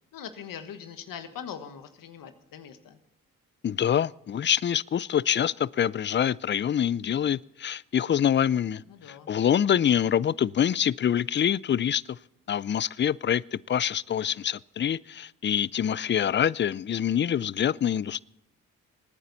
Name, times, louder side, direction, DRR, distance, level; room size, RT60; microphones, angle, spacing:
voice 1, 0.1-3.0 8.9-9.3, left 8 dB, 80° left, 1.4 m, -41 dB
voice 2, 3.6-12.2 12.5-13.4 13.7-18.2, left 9 dB, 35° left, 0.4 m, -25 dB
23.0 x 9.6 x 4.1 m
supercardioid pair, 50°, 34 cm